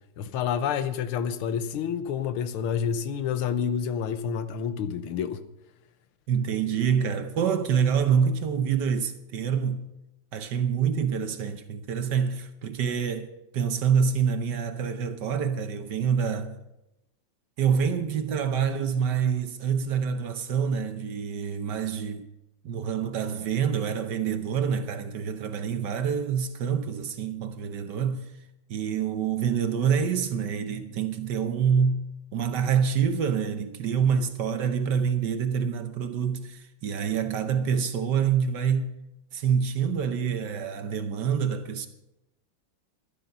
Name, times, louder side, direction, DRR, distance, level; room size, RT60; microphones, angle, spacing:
voice 1, 0.2-5.4, left 7 dB, 90° left, 1.7 m, -28 dB
voice 2, 6.3-9.8 10.3-16.6 17.6-22.3 22.6-28.3 28.7-32.0 32.3-38.9 39.3-41.9, right 7 dB, 65° right, 1.3 m, -26 dB
12.0 x 11.5 x 5.4 m
omnidirectional pair, 2.3 m